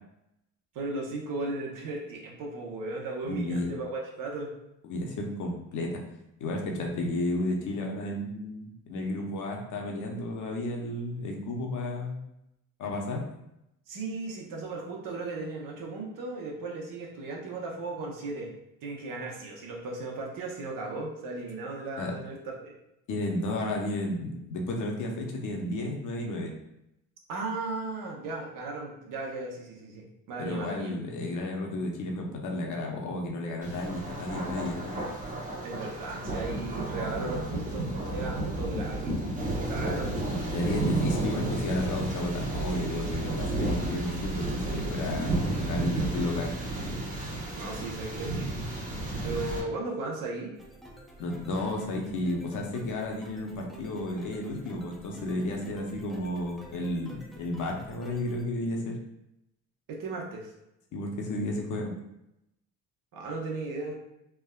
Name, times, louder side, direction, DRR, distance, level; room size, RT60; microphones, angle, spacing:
voice 1, 0.7-4.5 13.9-18.5 18.8-22.7 27.3-30.9 35.6-39.2 39.6-40.1 47.5-48.5 49.2-50.5 59.9-60.5 63.1-64.0, right 2 dB, 75° right, -2 dB, 0.9 m, -36 dB
voice 2, 3.2-3.7 4.8-6.0 6.4-12.2 12.8-13.2 22.0-22.1 23.1-26.5 30.4-35.0 40.5-46.5 51.2-59.0 60.9-61.9, left 1 dB, 65° left, 1 dB, 0.7 m, -32 dB
Thunder, 33.6-49.6, right 2 dB, 25° right, 0.9 m, -32 dB
sound 1, 50.5-58.4, right 1 dB, ahead, 0.4 m, -50 dB
3.4 x 2.2 x 2.2 m, 0.83 s
cardioid pair, 90°, 33 cm